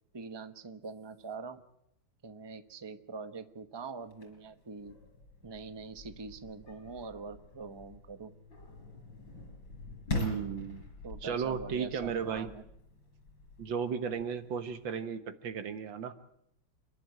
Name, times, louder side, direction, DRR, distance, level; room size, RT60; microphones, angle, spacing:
voice 1, 0.1-1.6 2.2-5.0 5.4-8.3 11.0-12.6, right 4 dB, 20° right, 9 dB, 0.8 m, -44 dB
sound 1, 4.0-15.0, left 2 dB, 85° left, 5.3 m, -44 dB
voice 2, 10.1-10.8 11.2-12.5 13.6-16.1, right 6 dB, 85° right, 10 dB, 2.0 m, -35 dB
27.5 x 11.5 x 9.3 m, 0.78 s
omnidirectional pair, 2.0 m